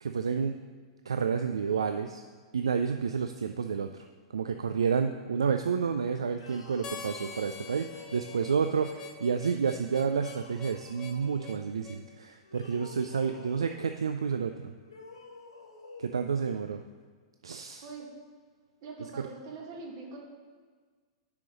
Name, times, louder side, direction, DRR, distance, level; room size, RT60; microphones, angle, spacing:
voice 1, 0.0-0.6 1.1-2.2 2.5-4.0 4.3-14.7 16.0-16.8 17.4-17.8, right 6 dB, 80° right, 7 dB, 0.4 m, -30 dB
sound 1, 6.3-9.1 10.1-11.6 12.4-14.0 14.8-16.3, left 2 dB, 80° left, 1.7 m, -49 dB
Harmonica, 6.8-12.1, left 6 dB, 25° left, 0.8 m, -45 dB
voice 2, 18.8-20.2, right 4 dB, 50° right, -1 dB, 1.8 m, -42 dB
6.7 x 5.0 x 6.3 m, 1.5 s
figure-of-eight pair, 100°, 3 cm